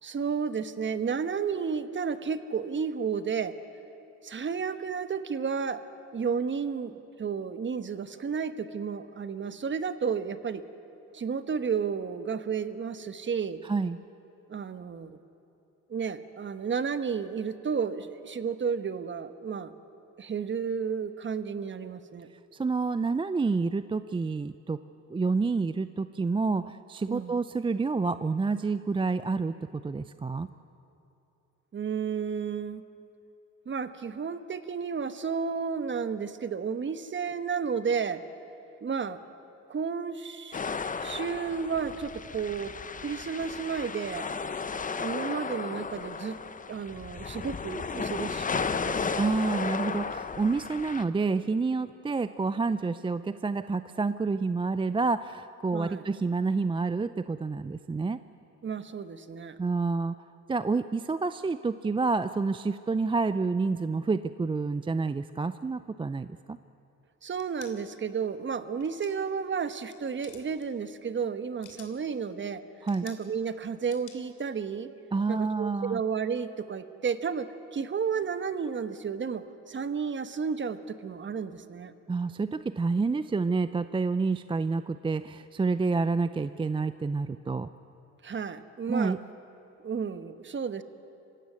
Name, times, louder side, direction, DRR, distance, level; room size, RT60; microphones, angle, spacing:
voice 1, 0.0-3.5 4.2-5.8 6.1-10.6 11.1-13.6 14.5-15.2 15.9-19.7 20.2-22.3 27.1-27.4 31.7-32.8 33.6-38.2 38.8-39.2 39.7-42.7 43.0-44.3 45.0-46.4 46.7-49.2 55.7-56.0 58.6-59.6 67.2-72.6 73.0-74.9 75.3-81.9 88.2-89.2 89.8-90.8, right 6 dB, 40° right, 11 dB, 1.2 m, -32 dB
voice 2, 22.5-24.8 25.1-29.5 29.8-30.5 49.2-58.2 59.6-60.1 60.5-66.6 72.8-73.1 75.1-76.0 82.1-87.7 88.9-89.2, right 4 dB, 15° right, 13 dB, 0.5 m, -28 dB
sound 1, 40.5-51.0, left 5 dB, 25° left, 0.8 m, -34 dB
sound 2, 67.3-67.7 68.8-69.3 69.7-70.0 70.2-70.7 71.4-72.0 72.9-73.3 73.9-74.2, left 9 dB, 80° left, 2.7 m, -51 dB
25.5 x 16.0 x 9.5 m, 2.9 s
cardioid pair, 90°, 30 cm